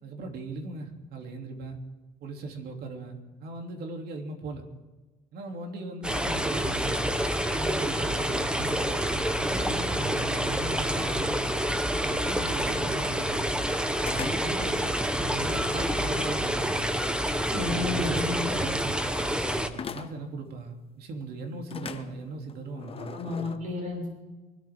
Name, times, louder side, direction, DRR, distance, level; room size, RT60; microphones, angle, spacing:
voice 1, 0.0-1.8 2.2-4.7 5.3-7.0 7.5-9.0 9.4-11.4 12.0-13.5 14.0-16.9 17.6-19.1 19.6-23.2, right 3 dB, 70° right, 3 dB, 2.9 m, -38 dB
sound 1, 6.0-19.7, equal, 5° right, 1.1 m, -28 dB
sound 2, 14.1-14.6 15.2-16.7 19.7-20.4 21.7-23.6, left 6 dB, 35° left, 1.0 m, -40 dB
voice 2, 17.5-18.5 23.1-24.1, left 3 dB, 50° right, -1 dB, 6.6 m, -31 dB
23.5 x 13.0 x 3.6 m, 1.2 s
cardioid pair, 110°, 17 cm